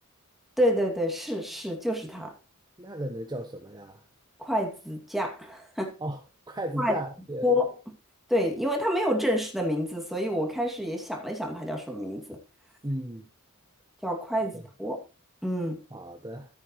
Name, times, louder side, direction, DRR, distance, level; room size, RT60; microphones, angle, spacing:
voice 1, 0.6-2.3 4.4-5.9 6.8-7.0 7.4-7.7 8.3-12.4 14.0-15.0 15.4-15.8, equal, ahead, 2.4 m, -28 dB
voice 2, 2.8-4.0 6.0-6.2 6.5-7.5 12.8-13.3 14.5-14.6 15.9-16.5, right 1 dB, 20° right, 1.0 m, -35 dB
14.0 x 8.6 x 3.1 m
head